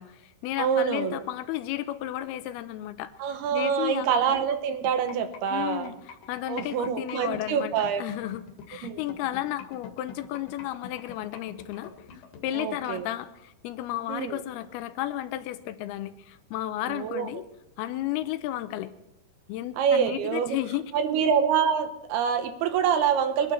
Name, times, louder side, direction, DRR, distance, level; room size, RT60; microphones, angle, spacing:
voice 1, 0.0-3.1 3.5-4.4 5.5-6.0 6.3-17.4 17.8-18.9 19.5-20.9 21.2-21.3, left 13 dB, 85° left, 11 dB, 2.7 m, -33 dB
voice 2, 0.6-1.2 3.2-5.9 6.5-8.1 8.8-9.0 12.5-13.1 14.1-14.4 16.9-17.3 19.8-20.6 20.9-23.5, right 7 dB, 80° right, 8 dB, 3.2 m, -26 dB
sound 1, 4.8-12.8, left 6 dB, 65° left, 2.8 m, -44 dB
22.5 x 12.0 x 4.3 m, 0.87 s
omnidirectional pair, 4.5 m